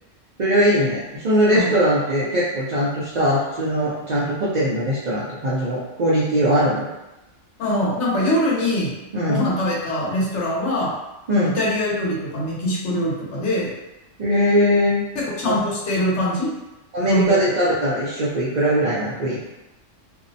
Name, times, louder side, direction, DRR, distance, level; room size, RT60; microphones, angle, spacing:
voice 1, 0.4-6.9 9.1-9.4 11.3-11.6 14.2-15.0 15.5-15.6 16.9-19.4, equal, 65° right, -7 dB, 0.4 m, -20 dB
voice 2, 7.6-11.0 11.5-13.7 15.1-16.5 17.1-17.5, left 1 dB, 65° left, -5 dB, 1.0 m, -23 dB
2.6 x 2.0 x 2.6 m, 0.98 s
omnidirectional pair, 1.3 m